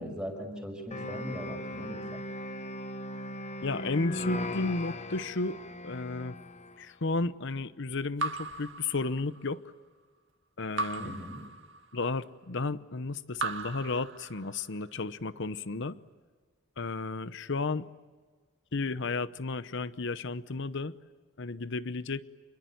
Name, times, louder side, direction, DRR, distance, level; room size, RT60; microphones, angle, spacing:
voice 1, 0.0-2.0 11.0-11.4, equal, 5° right, 3 dB, 5.5 m, -39 dB
sound 1, 0.9-6.8, left 1 dB, 35° left, 1.1 m, -38 dB
voice 2, 3.6-5.6 5.8-6.4 6.8-9.6 10.6-11.1 11.9-16.0 16.8-17.9 18.7-21.0 21.4-22.2, left 3 dB, 60° left, 15 dB, 0.9 m, -33 dB
Raindrop / Drip, 8.2-9.6 10.8-12.1 13.3-14.8, right 3 dB, 65° right, 2.1 m, -37 dB
28.0 x 21.5 x 9.4 m, 1.5 s
head